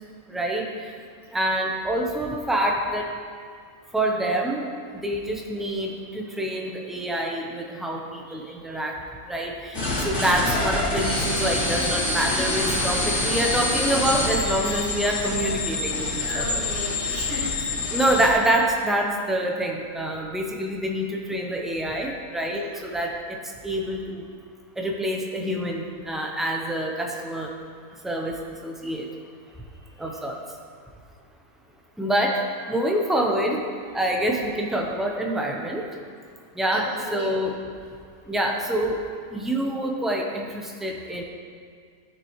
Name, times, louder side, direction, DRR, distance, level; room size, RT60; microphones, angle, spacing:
voice 1, 0.3-0.7 1.3-3.1 3.9-4.7 5.0-8.9 9.3-16.6 17.9-23.4 23.6-24.2 24.8-27.5 28.0-28.3 28.6-29.1 30.0-30.4 32.0-33.6 33.9-35.8 36.5-37.6 38.3-39.0 39.3-41.2, right 1 dB, ahead, 0 dB, 0.4 m, -26 dB
voice 2, 8.3-8.7 12.3-12.4 14.6-14.8 15.4-15.6 16.2-18.0 22.5-22.8 30.0-30.1 36.7-37.3, equal, 35° right, -4 dB, 1.8 m, -36 dB
sound 1, 9.7-18.3, left 2 dB, 50° left, 2.5 m, -26 dB
13.0 x 6.7 x 3.1 m, 2.1 s
omnidirectional pair, 1.5 m